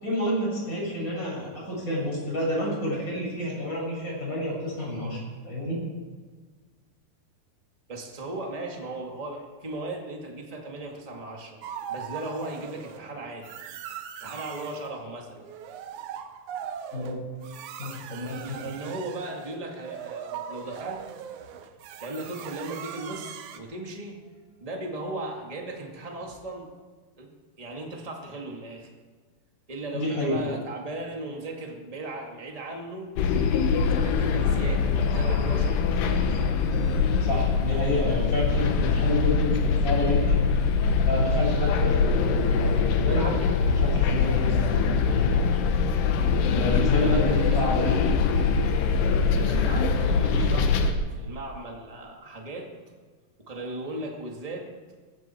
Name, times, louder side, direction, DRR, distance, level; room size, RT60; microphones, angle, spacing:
voice 1, 0.0-5.2 5.4-5.8 16.9-17.2 17.8-18.6 29.9-30.4 37.2-40.4 41.0-42.7 43.0-44.7 45.1-45.4 46.5-47.9, left 1 dB, 20° left, -4 dB, 6.3 m, -29 dB
voice 2, 7.9-11.6 11.9-13.5 14.2-15.5 18.1-21.0 22.0-26.7 27.2-27.3 27.6-28.9 29.7-33.1 33.8-36.4 47.0-48.0 49.2-52.7 53.4-54.7, right 2 dB, 20° right, 1 dB, 1.0 m, -37 dB
sound 1, 11.6-13.0 13.4-14.9 15.4-23.6, right 9 dB, 85° right, 1.7 m, -40 dB
sound 2, 33.2-50.9, left 5 dB, 80° left, 3.3 m, -23 dB
19.0 x 15.5 x 4.6 m, 1.5 s
omnidirectional pair, 4.8 m